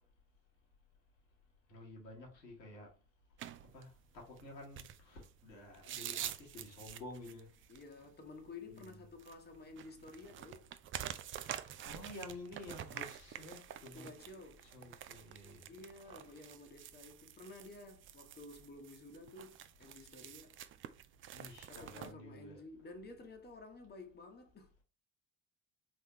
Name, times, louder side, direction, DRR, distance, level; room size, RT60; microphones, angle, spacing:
voice 1, 1.7-2.9 3.7-7.5 8.7-9.0 11.4-14.1 14.7-15.7 21.3-22.6, left 2 dB, 85° left, 1.4 m, -51 dB
sound 1, 3.4-22.1, right 11 dB, 30° right, 0.3 m, -48 dB
voice 2, 7.7-10.7 13.9-14.7 15.6-20.6 21.7-24.8, left 3 dB, 20° left, 1.0 m, -52 dB
4.1 x 3.6 x 2.9 m
figure-of-eight pair, 50°, 49 cm